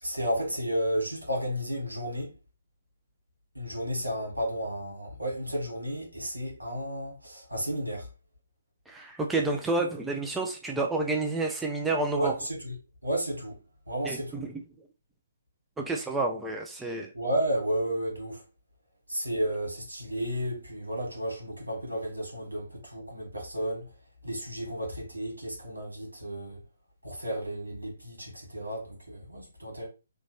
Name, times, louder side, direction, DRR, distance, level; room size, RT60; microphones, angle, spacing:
voice 1, 0.0-2.3 3.6-8.1 12.2-12.7 13.0-13.6 13.9-14.4 17.1-18.4 19.1-23.9 24.2-26.6 27.0-29.9, equal, 90° right, 1.8 m, -32 dB
voice 2, 8.9-12.4 14.0-14.5 15.8-17.1, right 2 dB, 5° right, 0.4 m, -29 dB
3.0 x 2.5 x 3.2 m
figure-of-eight pair, 140°, 0 cm